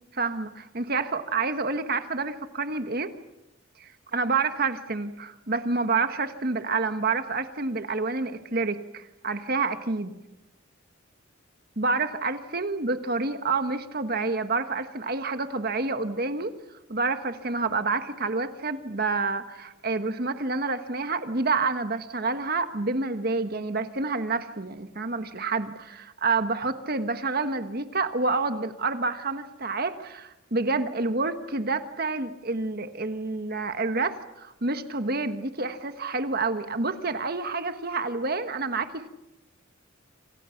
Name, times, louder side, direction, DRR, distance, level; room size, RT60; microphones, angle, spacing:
voice 1, 0.2-3.1 3.8-10.1 11.8-16.6 16.9-39.1, right 3 dB, 50° right, 9 dB, 1.4 m, -28 dB
27.5 x 27.5 x 5.9 m, 0.91 s
head